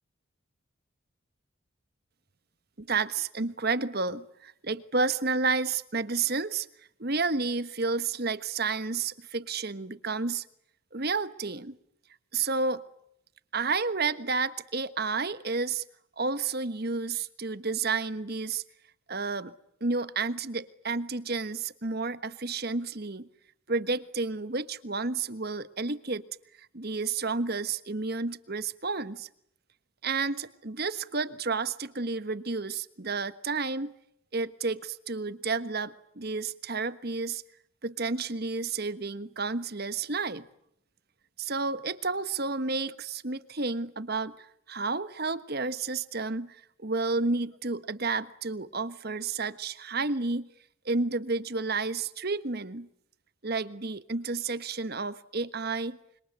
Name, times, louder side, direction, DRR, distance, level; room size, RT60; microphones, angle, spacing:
voice 1, 2.8-6.7 7.0-10.5 10.9-11.8 12.3-12.8 13.5-15.8 16.2-18.6 19.1-19.5 19.8-23.3 23.7-26.2 26.6-29.3 30.0-33.9 34.3-37.4 37.8-40.5 41.4-50.5 50.8-52.9 53.4-56.0, right 4 dB, 45° right, 1.4 m, -31 dB
26.5 x 26.0 x 8.3 m
head